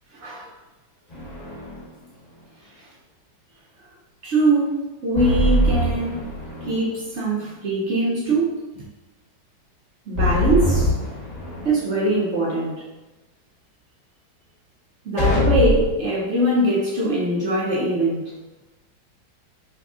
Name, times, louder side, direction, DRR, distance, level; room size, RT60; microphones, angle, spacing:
voice 1, 0.2-0.5 2.8-2.9 4.2-6.3 6.7-8.9 10.1-10.9 11.6-12.8 15.0-18.3, right 1 dB, 70° right, -6 dB, 0.6 m, -22 dB
sound 1, 1.1-1.8 5.2-6.9 10.2-11.8 15.2-16.1, equal, 25° left, 1.1 m, -22 dB
3.6 x 3.1 x 2.4 m, 1.1 s
omnidirectional pair, 1.9 m